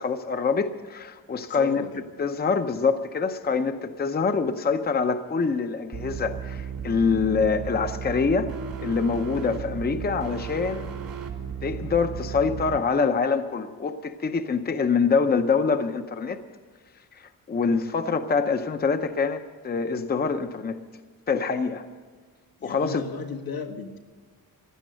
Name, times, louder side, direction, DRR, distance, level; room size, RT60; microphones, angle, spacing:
voice 1, 0.0-1.9 2.2-8.5 8.8-10.9 11.6-16.4 17.2-20.8 21.3-21.8 22.6-23.0, left 5 dB, 25° left, 8 dB, 0.7 m, -25 dB
voice 2, 1.5-2.0 22.6-24.0, left 4 dB, 85° left, 2 dB, 1.6 m, -35 dB
sound 1, 5.9-12.8, right 7 dB, 75° right, 2.6 m, -34 dB
16.0 x 11.5 x 7.8 m, 1.5 s
wide cardioid pair, 175°, 35 cm